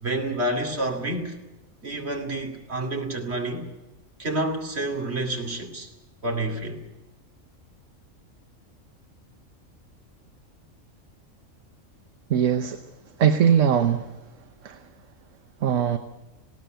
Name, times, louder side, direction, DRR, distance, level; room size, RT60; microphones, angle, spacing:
voice 1, 0.0-1.4 1.8-3.7 4.2-5.9 6.2-6.8, right 1 dB, 55° right, 3 dB, 2.9 m, -29 dB
voice 2, 12.3-12.8 13.2-14.1 14.6-14.8 15.6-16.0, right 8 dB, 75° right, 8 dB, 1.3 m, -20 dB
20.0 x 17.5 x 9.1 m, 1.0 s
omnidirectional pair, 1.4 m